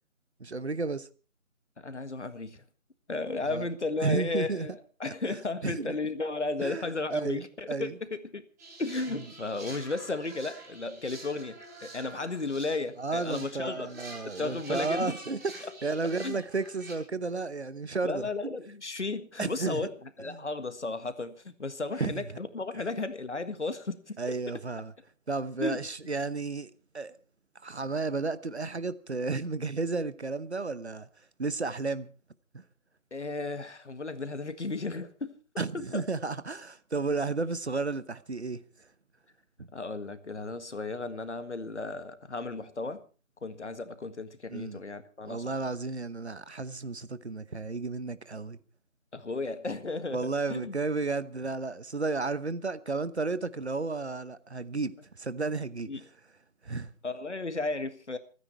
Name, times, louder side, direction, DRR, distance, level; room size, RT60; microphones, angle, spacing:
voice 1, 0.4-1.1 3.4-3.7 4.0-4.7 5.0-5.9 6.6-6.9 7.1-8.0 13.0-18.3 19.4-19.8 20.3-20.4 22.0-22.2 22.8-22.9 24.2-24.9 25.3-27.2 27.6-31.1 31.4-32.1 32.5-32.6 35.6-38.6 39.6-39.7 44.5-44.8 45.2-48.6 50.1-56.0 56.6-56.9, right 3 dB, 50° right, 1.1 m, -33 dB
voice 2, 1.8-2.6 3.1-8.5 8.8-13.9 14.3-15.1 16.2-16.4 18.0-19.9 20.2-24.2 24.5-24.6 25.6-25.8 33.1-35.3 35.7-36.0 39.7-43.0 43.4-45.5 49.1-50.8 55.9-56.0 57.0-58.2, left 3 dB, 55° left, 1.8 m, -34 dB
sound 1, 8.6-16.9, right 2 dB, 15° right, 3.4 m, -47 dB
27.5 x 9.9 x 4.4 m
figure-of-eight pair, 165°, 41 cm